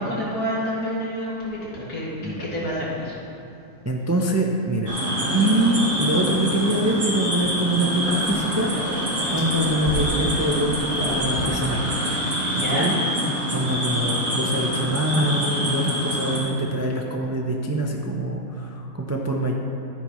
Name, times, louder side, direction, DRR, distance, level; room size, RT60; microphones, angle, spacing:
voice 1, 0.0-3.2 12.6-12.9, equal, 85° left, -6 dB, 2.9 m, -28 dB
voice 2, 3.8-4.9 5.3-9.0 9.3-11.9 12.5-12.9 13.5-19.5, right 1 dB, 20° right, 0 dB, 0.4 m, -24 dB
sound 1, 4.9-16.4, equal, 55° right, 2.9 m, -26 dB
sound 2, 5.2-11.5, equal, 40° left, 1.6 m, -36 dB
14.0 x 9.5 x 3.1 m, 2.6 s
omnidirectional pair, 1.6 m